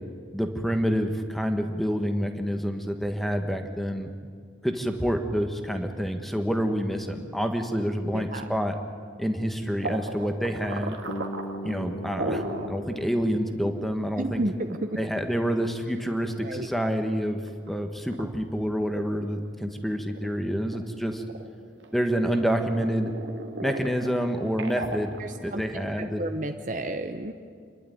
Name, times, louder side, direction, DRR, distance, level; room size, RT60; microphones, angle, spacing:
voice 1, 0.3-4.1 4.6-8.8 9.2-11.0 11.6-14.4 15.0-17.4 17.7-21.2 21.9-23.1 23.6-25.1 25.4-26.2, equal, ahead, 5 dB, 1.4 m, -28 dB
voice 2, 8.0-8.4 14.2-15.0 16.4-16.7 25.2-27.3, right 1 dB, 40° right, 6 dB, 0.8 m, -32 dB
sound 1, 9.8-12.7 13.2-13.3 13.6-13.7 14.5-16.8 17.3-17.7 18.1-18.2 18.8-19.8 20.1-21.9 22.3-25.8, right 2 dB, 75° right, 2.0 m, -36 dB
Bass guitar, 11.1-15.2, equal, 60° left, 1.2 m, -40 dB
28.0 x 11.5 x 9.3 m, 2.1 s
head